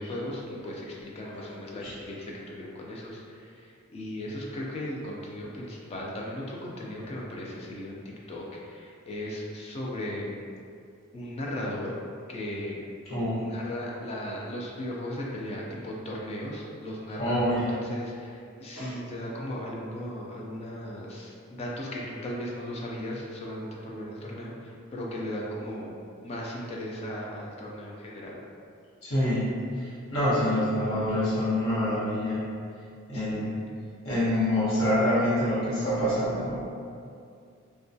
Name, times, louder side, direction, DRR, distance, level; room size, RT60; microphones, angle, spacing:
voice 1, 0.0-10.4 11.1-11.9 12.3-12.9 13.4-26.0 26.2-28.4 33.1-33.5, left 1 dB, 30° left, -3 dB, 0.3 m, -37 dB
voice 2, 13.1-13.4 17.2-17.7 18.8-18.9 29.0-32.4 33.1-33.6 34.0-36.7, left 1 dB, 70° left, -10 dB, 1.0 m, -26 dB
2.2 x 2.2 x 2.6 m, 2.4 s
head